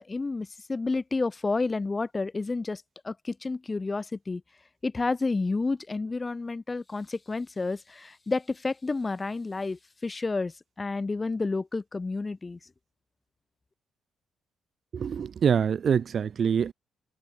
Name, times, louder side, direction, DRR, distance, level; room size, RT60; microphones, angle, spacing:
voice 1, 0.0-4.4 4.8-12.6, left 3 dB, 25° left, 7.1 m, -30 dB
voice 2, 14.9-16.7, right 7 dB, 50° right, 2.1 m, -25 dB
cardioid pair, 90°, 0 cm